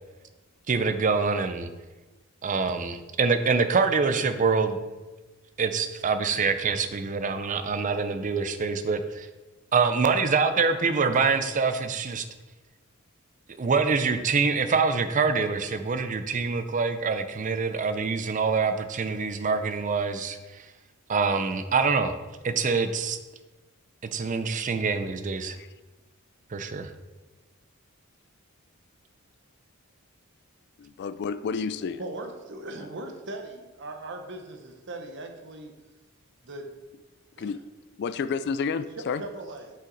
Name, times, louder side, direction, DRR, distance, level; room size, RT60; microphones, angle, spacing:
voice 1, 0.7-1.7 2.4-4.8 5.6-9.3 9.7-12.2 13.6-20.7 21.1-22.1 22.4-23.2 24.1-25.6 26.5-26.9, right 5 dB, 35° right, 9 dB, 0.5 m, -25 dB
voice 2, 30.8-32.0 37.4-37.6 38.0-39.2, left 5 dB, 50° left, 12 dB, 0.3 m, -30 dB
voice 3, 32.0-35.7 36.4-36.7 37.3-37.5 39.2-39.7, right 2 dB, 55° right, 5 dB, 0.8 m, -39 dB
5.9 x 5.7 x 3.9 m, 1.2 s
head